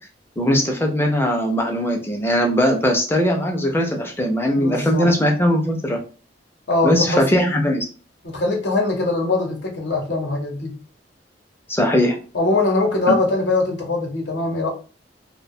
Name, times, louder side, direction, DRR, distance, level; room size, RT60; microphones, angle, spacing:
voice 1, 0.4-6.0 6.8-7.8 11.7-12.2 13.1-13.2, equal, 15° left, 2 dB, 0.4 m, -19 dB
voice 2, 4.6-5.1 6.7-7.2 8.2-10.8 12.3-14.7, left 2 dB, 70° left, 1 dB, 0.8 m, -22 dB
2.5 x 2.1 x 2.6 m, 0.36 s
head